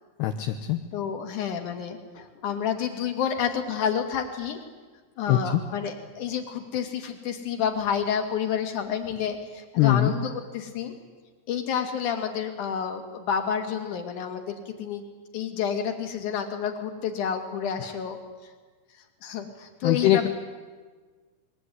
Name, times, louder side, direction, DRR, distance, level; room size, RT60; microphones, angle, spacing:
voice 1, 0.2-0.8 5.3-5.6 9.8-10.1 17.8-17.9 19.8-20.3, left 12 dB, 70° left, 6 dB, 2.7 m, -22 dB
voice 2, 0.9-4.6 5.2-10.9 11.5-15.0 15.3-18.5 19.2-20.3, left 7 dB, 45° left, 6 dB, 3.5 m, -29 dB
28.0 x 22.0 x 9.6 m, 1.4 s
omnidirectional pair, 5.6 m